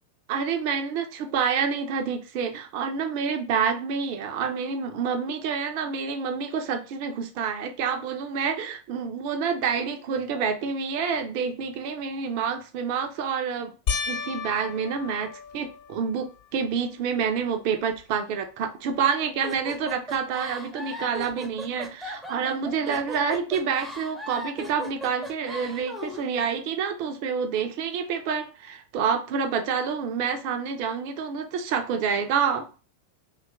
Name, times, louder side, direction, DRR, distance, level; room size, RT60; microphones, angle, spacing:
voice 1, 0.3-13.7 14.1-32.7, right 6 dB, 50° right, 0.5 m, -28 dB
sound 1, 13.9-16.5 17.1-17.6 18.0-18.1 21.3-21.4, left 6 dB, 50° left, 0.8 m, -34 dB
sound 2, 19.4-26.3, equal, ahead, 0.6 m, -38 dB
2.8 x 2.4 x 3.3 m
figure-of-eight pair, 90°, 0 cm